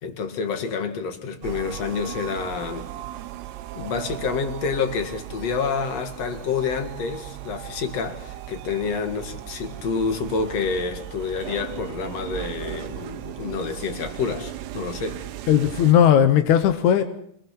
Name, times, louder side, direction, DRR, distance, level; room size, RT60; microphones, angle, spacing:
voice 1, 0.0-2.9 3.8-15.2, left 5 dB, 50° left, 2.5 m, -28 dB
sound 1, 1.4-15.9, right 13 dB, 85° right, 3.1 m, -37 dB
voice 2, 15.5-17.0, left 9 dB, 75° left, 1.7 m, -17 dB
25.5 x 20.0 x 5.9 m
omnidirectional pair, 4.7 m